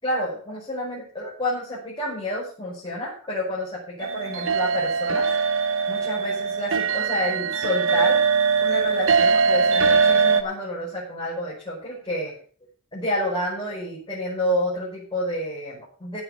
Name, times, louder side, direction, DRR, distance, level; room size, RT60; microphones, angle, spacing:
voice 1, 0.0-5.3 5.9-8.2 8.6-12.4 12.9-16.2, left 1 dB, 20° left, -7 dB, 5.4 m, -29 dB
sound 1, 4.0-10.4, right 5 dB, 65° right, 1.2 m, -21 dB
16.0 x 6.3 x 6.8 m, 0.43 s
head